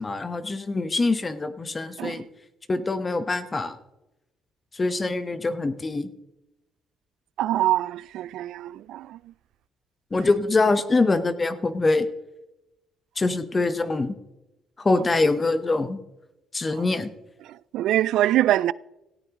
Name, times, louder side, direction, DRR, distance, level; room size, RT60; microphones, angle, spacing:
voice 1, 0.0-2.2 2.7-3.7 4.7-6.1 10.1-12.1 13.2-14.1 14.8-16.0 16.5-17.1, left 3 dB, 25° left, 1.1 m, -24 dB
voice 2, 7.4-9.0 17.7-18.7, right 13 dB, 75° right, 0.3 m, -23 dB
17.5 x 14.5 x 3.0 m
cardioid pair, 80°, 0 cm